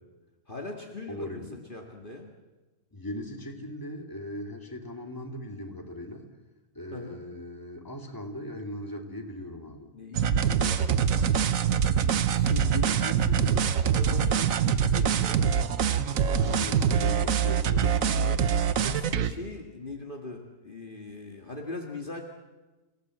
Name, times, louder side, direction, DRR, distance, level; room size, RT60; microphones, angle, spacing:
voice 1, 0.5-1.4 1.7-2.3 6.9-7.2 9.9-10.9 12.0-15.4 18.1-18.5 18.8-22.2, left 2 dB, 40° left, 1 dB, 2.1 m, -40 dB
voice 2, 1.1-1.6 2.9-6.3 6.7-9.9 12.6-12.9 16.2-18.3, left 1 dB, 15° left, 3 dB, 2.7 m, -39 dB
sound 1, 10.1-19.3, right 7 dB, 80° right, 1.3 m, -24 dB
29.5 x 17.0 x 7.8 m, 1.2 s
omnidirectional pair, 1.4 m